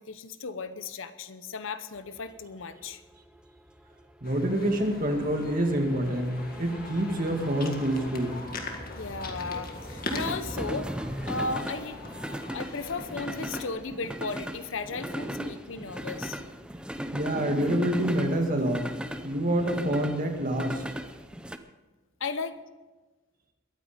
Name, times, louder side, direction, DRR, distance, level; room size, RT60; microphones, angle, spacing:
voice 1, 0.0-3.0 8.9-10.9 11.3-12.0 12.5-16.4 22.2-22.6, left 4 dB, 65° left, 11 dB, 0.8 m, -35 dB
sound 1, 2.1-21.6, equal, 5° right, 0.6 m, -38 dB
sound 2, 4.2-13.7, left 2 dB, 45° left, 1.9 m, -41 dB
voice 2, 4.2-8.4 17.1-20.8, right 1 dB, 40° right, 3 dB, 2.2 m, -27 dB
22.0 x 9.1 x 5.1 m, 1.2 s
head